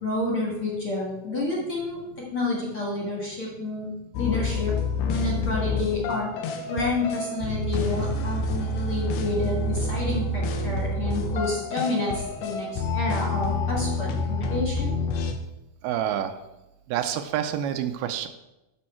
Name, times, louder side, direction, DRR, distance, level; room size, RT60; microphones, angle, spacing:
voice 1, 0.0-4.7 5.0-6.3 6.7-15.0, left 2 dB, 45° left, -2 dB, 2.0 m, -29 dB
sound 1, 4.1-15.3, left 2 dB, 80° left, 2.8 m, -28 dB
voice 2, 15.8-16.3 16.9-18.3, right 10 dB, 85° right, 8 dB, 2.5 m, -27 dB
10.5 x 6.3 x 4.4 m, 0.95 s
omnidirectional pair, 4.4 m